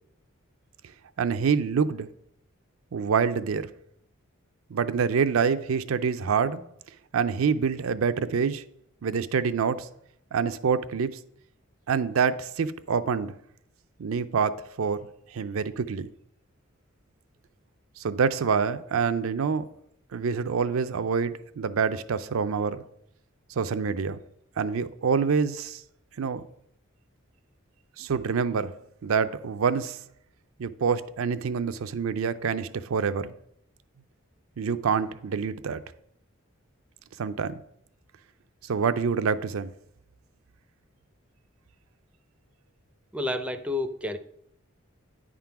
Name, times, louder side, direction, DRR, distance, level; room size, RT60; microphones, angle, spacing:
voice 1, 1.2-2.1 2.9-3.7 4.7-6.6 7.1-8.6 9.0-9.9 10.3-11.2 11.9-13.3 14.0-16.1 18.0-19.7 20.1-22.8 23.6-24.2 24.6-25.8 26.2-26.4 28.0-28.7 29.0-30.0 30.6-33.3 34.6-35.8 37.2-37.6 38.6-39.7, right 6 dB, 80° right, 0.5 m, -26 dB
voice 2, 43.1-44.2, left 2 dB, 5° right, 0.4 m, -30 dB
9.5 x 3.7 x 5.8 m
head